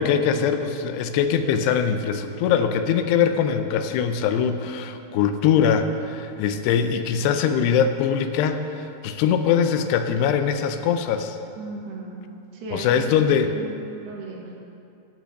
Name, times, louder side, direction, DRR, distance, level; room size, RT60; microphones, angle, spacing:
voice 1, 0.0-11.4 12.7-13.5, left 7 dB, 90° left, 8 dB, 2.8 m, -22 dB
voice 2, 11.6-12.2 12.5-13.7 14.0-14.5, right 3 dB, 80° right, -2 dB, 3.6 m, -36 dB
11.0 x 8.2 x 6.3 m, 2.6 s
omnidirectional pair, 4.7 m